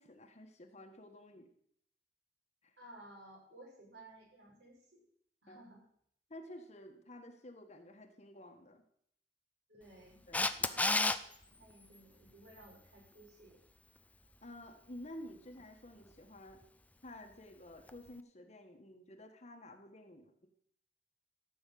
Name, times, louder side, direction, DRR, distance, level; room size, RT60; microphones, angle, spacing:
voice 1, 0.0-1.5 2.6-2.7 5.5-5.6 6.3-8.8 10.3-10.8 14.4-16.6 17.0-20.5, left 1 dB, 40° left, 4 dB, 1.4 m, -52 dB
voice 2, 2.8-5.0 5.4-5.8 9.7-10.2 10.6-13.6, right 1 dB, 75° right, -2 dB, 5.9 m, -57 dB
Camera, 10.3-11.2 17.9-18.0, left 2 dB, 10° left, 0.6 m, -30 dB
14.0 x 6.2 x 8.5 m, 0.68 s
head